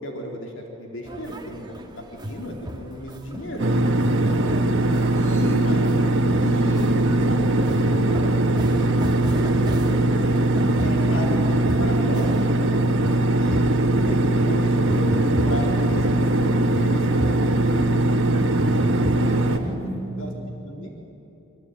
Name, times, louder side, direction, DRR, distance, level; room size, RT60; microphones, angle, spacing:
voice 1, 0.0-3.6 5.5-5.9 6.4-7.0 7.3-10.1 10.7-12.4 13.2-16.1 16.4-18.0 18.6-20.9, equal, 65° left, 1 dB, 3.5 m, -35 dB
sound 1, 1.1-19.8, equal, 20° right, 1.5 m, -35 dB
sound 2, 3.6-19.6, right 1 dB, 60° right, 1.7 m, -20 dB
voice 2, 4.0-4.8 5.1-5.6 19.6-20.3, right 1 dB, 10° left, -1 dB, 5.0 m, -33 dB
25.5 x 22.5 x 9.3 m, 3.0 s
head